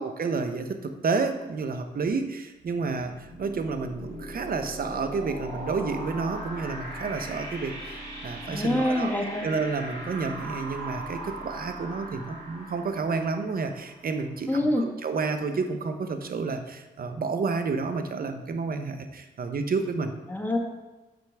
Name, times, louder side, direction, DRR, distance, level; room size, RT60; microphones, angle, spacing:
voice 1, 0.0-9.1 9.4-20.1, right 4 dB, 55° right, 7 dB, 0.8 m, -30 dB
sound 1, 2.6-14.3, right 1 dB, 75° right, 2.0 m, -39 dB
voice 2, 8.4-9.5 14.5-14.8 20.3-20.6, left 1 dB, 10° left, 1 dB, 1.4 m, -25 dB
7.0 x 5.9 x 3.4 m, 1.1 s
supercardioid pair, 50°, 18 cm